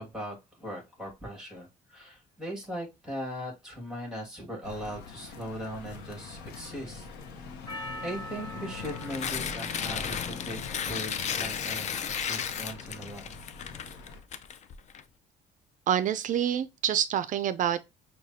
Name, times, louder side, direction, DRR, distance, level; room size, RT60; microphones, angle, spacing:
voice 1, 0.0-7.1 8.0-11.9 12.2-13.4, equal, 5° right, 2.0 m, -39 dB
sound 1, 4.6-14.2, left 5 dB, 90° left, 0.8 m, -43 dB
Percussion, 7.7-12.2, left 1 dB, 25° left, 1.6 m, -45 dB
Tearing, 8.7-15.0, left 7 dB, 45° left, 0.5 m, -34 dB
voice 2, 15.9-17.8, right 9 dB, 50° right, 0.4 m, -27 dB
6.3 x 2.3 x 2.8 m
cardioid pair, 110°, 17 cm